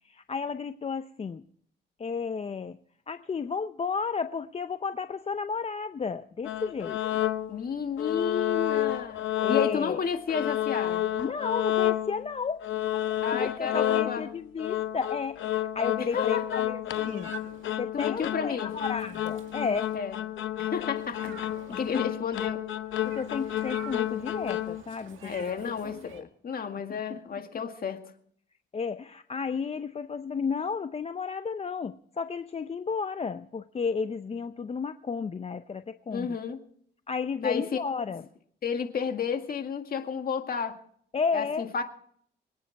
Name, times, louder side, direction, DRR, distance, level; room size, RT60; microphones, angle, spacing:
voice 1, 0.0-1.4 2.0-2.8 3.1-7.2 9.4-10.0 11.2-12.6 13.3-17.3 17.8-19.9 21.3-21.4 21.7-22.0 23.0-25.3 25.6-26.3 26.9-27.2 28.7-36.4 37.1-38.3 41.1-41.6, left 5 dB, 30° left, 0.6 m, -33 dB
sound 1, 6.4-7.6 8.0-10.0 10.3-12.3 12.6-24.8, left 12 dB, 75° left, 0.8 m, -30 dB
voice 2, 7.5-9.2 9.5-11.1 13.2-14.3 16.1-16.7 17.9-18.7 19.9-20.1 20.6-22.6 25.2-26.1 26.4-28.0 36.1-36.6 37.4-37.7 38.6-40.8 41.3-41.8, left 6 dB, 50° left, 2.0 m, -32 dB
Meow, 16.9-17.7 18.7-20.0 21.0-22.0 23.0-26.2, right 8 dB, 85° right, 2.1 m, -48 dB
23.5 x 9.7 x 4.7 m
cardioid pair, 90°, 20 cm